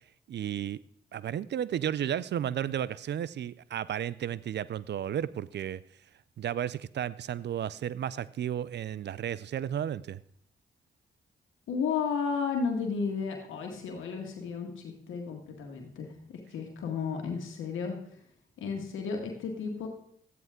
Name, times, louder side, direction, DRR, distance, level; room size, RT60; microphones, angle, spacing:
voice 1, 0.3-0.8 1.1-5.8 6.4-10.2, right 10 dB, 60° right, 0.5 m, -33 dB
voice 2, 11.7-18.0 18.6-19.9, left 5 dB, 85° left, 1.7 m, -33 dB
13.5 x 9.2 x 3.7 m
supercardioid pair, 45°, 20 cm